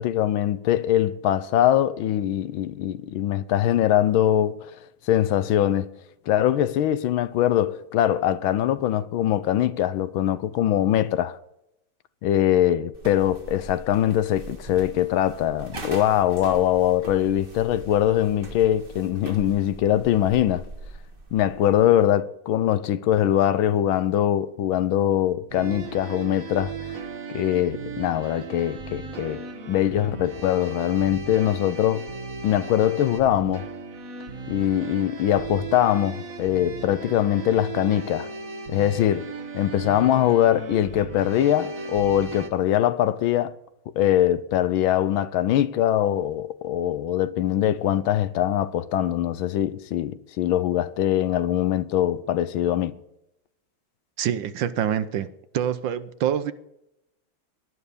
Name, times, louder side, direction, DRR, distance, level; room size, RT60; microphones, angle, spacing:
voice 1, 0.0-4.7 5.1-5.9 6.3-11.4 12.2-20.6 21.3-27.0 27.3-32.1 32.4-33.7 34.5-38.3 38.7-43.5 44.0-53.0, left 11 dB, 85° left, 1.6 m, -22 dB
sound 1, 12.9-21.9, right 2 dB, 30° right, 1.6 m, -41 dB
sound 2, 25.5-42.5, right 4 dB, 45° right, 1.8 m, -36 dB
voice 2, 54.2-56.5, right 9 dB, 70° right, 1.5 m, -26 dB
18.5 x 11.5 x 5.2 m
omnidirectional pair, 2.2 m